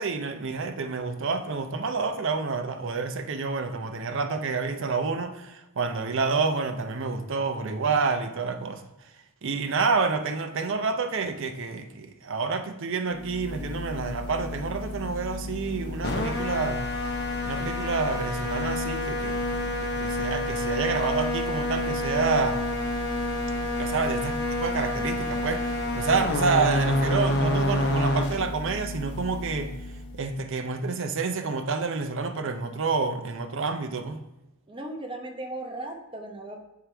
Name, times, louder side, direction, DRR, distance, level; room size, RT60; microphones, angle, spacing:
voice 1, 0.0-8.8 9.4-16.9 17.4-22.6 23.8-29.7 30.1-34.2, right 4 dB, 55° right, 0.6 m, -28 dB
sound 1, 13.1-30.3, left 1 dB, 45° left, 0.9 m, -29 dB
voice 2, 34.7-36.6, right 1 dB, 25° right, 0.9 m, -37 dB
7.4 x 4.7 x 3.4 m
head